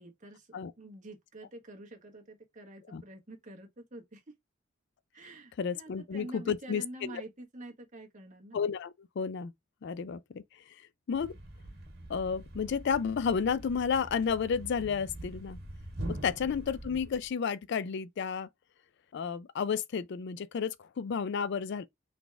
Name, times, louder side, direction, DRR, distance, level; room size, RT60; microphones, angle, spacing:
voice 1, 0.0-4.2 5.1-8.6 16.3-16.5, right 1 dB, 40° right, 1.4 m, -47 dB
voice 2, 5.6-7.2 8.5-9.5 9.8-10.4 11.1-11.4 12.1-15.6 16.1-18.5 19.1-21.9, left 6 dB, 60° left, 0.4 m, -32 dB
Thump thud, 11.1-17.3, right 1 dB, 55° right, 1.8 m, -44 dB
4.0 x 3.4 x 3.4 m
head